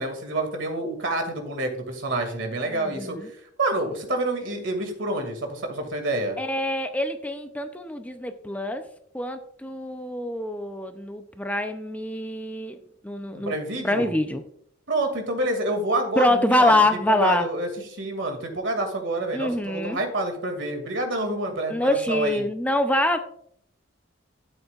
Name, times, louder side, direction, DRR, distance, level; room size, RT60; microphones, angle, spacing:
voice 1, 0.0-3.2 3.6-6.4 13.3-14.1 14.9-16.8 17.1-22.4, right 2 dB, 65° right, 5 dB, 2.3 m, -28 dB
voice 2, 2.7-3.3 6.4-8.9 9.1-12.8 13.0-13.5 13.8-14.4 16.2-17.5 19.3-20.0 21.7-23.2, left 1 dB, 10° left, 7 dB, 0.5 m, -25 dB
13.0 x 7.9 x 2.4 m, 0.67 s
head